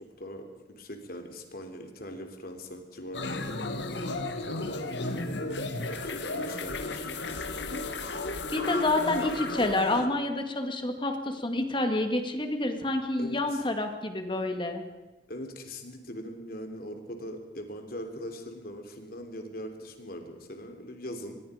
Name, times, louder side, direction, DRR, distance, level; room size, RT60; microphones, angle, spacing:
voice 1, 0.2-0.5 0.8-3.7 4.5-5.5 5.8-7.1 13.2-13.6 15.3-21.4, equal, 55° left, 5 dB, 3.4 m, -41 dB
sound 1, 3.1-10.1, left 2 dB, 80° left, 2.0 m, -34 dB
voice 2, 8.5-14.8, left 2 dB, 30° left, 5 dB, 2.2 m, -28 dB
24.0 x 22.0 x 5.1 m, 1.1 s
head